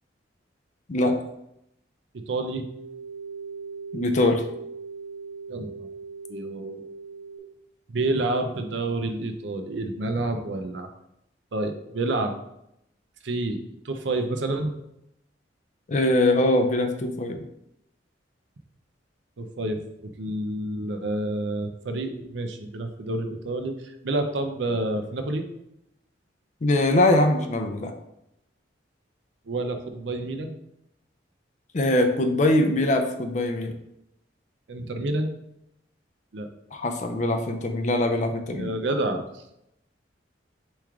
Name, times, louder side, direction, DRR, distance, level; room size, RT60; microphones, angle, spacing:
voice 1, 2.3-2.7 5.5-5.7 6.3-6.8 7.9-10.9 11.5-12.4 13.2-14.7 19.4-25.4 29.5-30.5 34.7-35.3 36.3-36.5 38.6-39.4, right 2 dB, 70° right, 7 dB, 0.6 m, -29 dB
sound 1, 2.4-7.4, right 5 dB, 80° left, 0.9 m, -39 dB
voice 2, 3.9-4.4 15.9-17.4 26.6-27.9 31.7-33.7 36.7-38.7, left 1 dB, 40° left, 5 dB, 0.4 m, -22 dB
4.8 x 3.1 x 3.5 m, 0.82 s
head